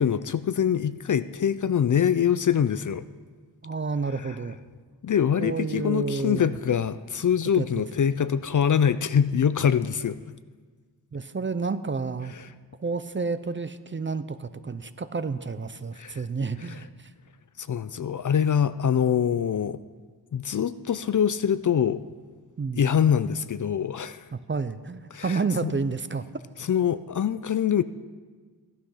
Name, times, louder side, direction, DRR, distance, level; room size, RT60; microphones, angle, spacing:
voice 1, 0.0-3.1 5.0-10.2 16.0-16.2 17.6-19.8 20.3-22.0 22.7-24.3 25.1-25.7 26.7-27.8, left 8 dB, 50° left, 14 dB, 0.4 m, -24 dB
voice 2, 3.6-4.6 5.4-6.6 7.5-7.8 11.1-12.3 12.8-17.1 22.6-22.8 24.3-26.3, right 4 dB, 30° right, 12 dB, 0.5 m, -30 dB
15.5 x 12.0 x 5.6 m, 1.5 s
wide cardioid pair, 130°, 42 cm